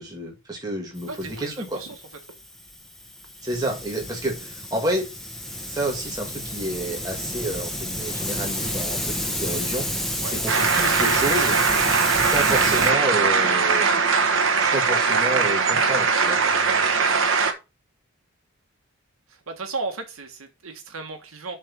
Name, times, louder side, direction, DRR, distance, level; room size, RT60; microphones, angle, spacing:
voice 1, 0.0-1.8 3.4-5.0 5.7-9.9 10.3-11.6 12.2-13.9 14.6-16.4, right 1 dB, 20° right, 0 dB, 2.3 m, -29 dB
Hiss, 1.0-12.9, left 1 dB, ahead, 0.9 m, -31 dB
voice 2, 1.1-2.0 10.2-10.4 12.5-13.1 16.6-17.2 19.3-21.6, right 3 dB, 85° right, 5 dB, 1.5 m, -35 dB
sound 1, 10.5-17.5, right 5 dB, 70° right, 1.1 m, -20 dB
7.5 x 3.4 x 6.1 m, 0.27 s
head